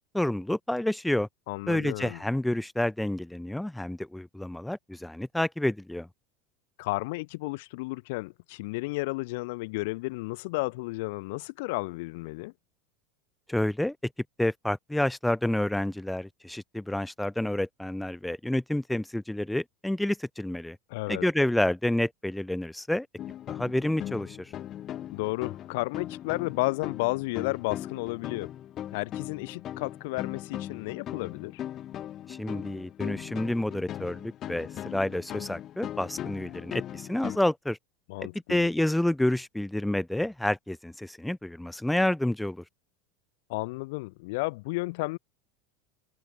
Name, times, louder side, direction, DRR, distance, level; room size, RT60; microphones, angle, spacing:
voice 1, 0.1-1.3 1.7-6.1 13.5-14.0 14.4-20.8 21.1-23.1 23.5-24.5 32.3-37.8 38.2-42.6, left 1 dB, 5° left, 1.7 m, -29 dB
voice 2, 1.5-2.2 6.8-12.5 20.9-21.3 25.1-28.5 28.9-31.6 38.1-38.7 43.5-45.2, left 24 dB, 70° left, 1.8 m, -32 dB
sound 1, 23.2-37.4, left 11 dB, 40° left, 4.7 m, -39 dB
hypercardioid pair, 100°, 0 cm